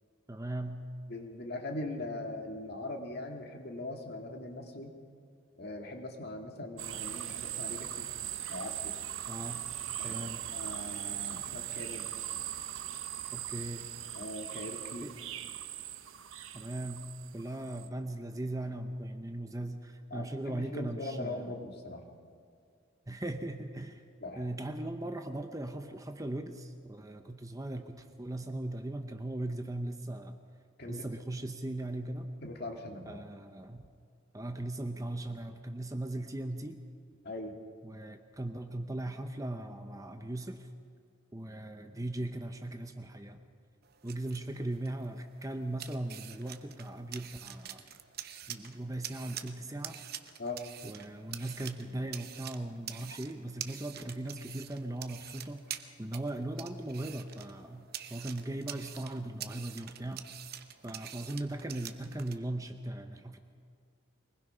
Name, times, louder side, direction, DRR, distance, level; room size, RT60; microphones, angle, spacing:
voice 1, 0.3-0.8 9.3-9.6 10.0-10.4 13.3-13.9 15.0-15.1 16.5-17.0 17.3-21.6 23.1-24.0 24.4-30.4 30.9-32.3 33.1-33.9 34.3-36.8 37.8-40.7 41.3-43.4 44.0-47.9 48.5-50.0 50.8-60.3 60.8-63.4, right 1 dB, 15° right, 7 dB, 0.8 m, -38 dB
voice 2, 1.1-4.9 5.6-8.1 8.5-8.9 10.0-12.0 14.2-15.1 20.1-22.2 24.2-24.4 30.8-31.0 32.4-33.2 37.2-37.5 50.4-50.6, left 2 dB, 50° left, 3 dB, 2.0 m, -41 dB
sound 1, 6.8-17.9, right 11 dB, 70° right, 1.0 m, -40 dB
sound 2, 43.8-62.4, right 10 dB, 45° right, 0.9 m, -47 dB
24.5 x 20.0 x 5.6 m, 2.2 s
head